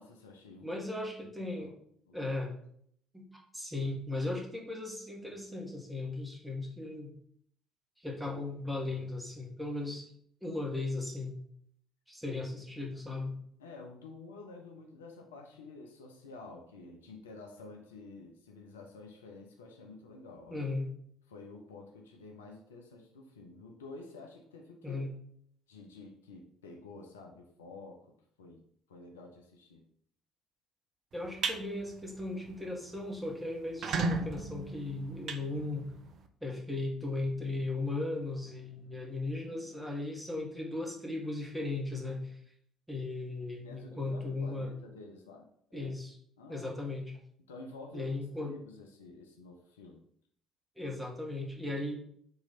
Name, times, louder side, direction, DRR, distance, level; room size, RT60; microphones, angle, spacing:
voice 1, 0.0-0.7 1.2-1.7 2.1-2.2 13.6-20.6 21.3-25.0 25.7-28.6 28.9-29.8 43.6-45.9 46.4-47.0 47.5-48.1 48.4-50.0, left 3 dB, 80° left, 2 dB, 0.5 m, -50 dB
voice 2, 0.6-1.7 2.1-2.5 3.1-3.2 3.5-7.1 8.0-10.1 10.4-11.4 12.1-13.4 20.5-20.9 24.8-25.1 31.1-35.9 36.4-42.4 42.9-44.7 45.7-46.1 46.5-47.1 47.9-48.5 50.8-51.9, left 2 dB, 5° right, -1 dB, 1.4 m, -37 dB
sound 1, 31.1-31.6 32.0-32.3 32.6-32.7 33.0-33.1 33.6-36.1, right 3 dB, 50° right, 0.4 m, -34 dB
3.8 x 3.0 x 4.0 m, 0.66 s
figure-of-eight pair, 50°, 0 cm